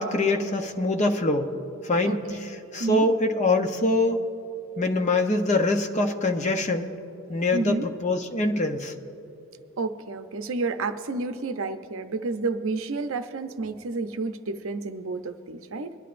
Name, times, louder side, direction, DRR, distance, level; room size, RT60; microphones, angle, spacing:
voice 1, 0.0-1.5 1.8-4.2 4.8-6.9 7.3-7.7 8.0-8.9, left 2 dB, 30° left, 5 dB, 0.7 m, -24 dB
voice 2, 2.0-2.5 2.8-3.1 7.5-7.9 9.8-16.0, right 3 dB, 70° right, 8 dB, 0.6 m, -30 dB
22.5 x 11.5 x 2.5 m, 3.0 s
head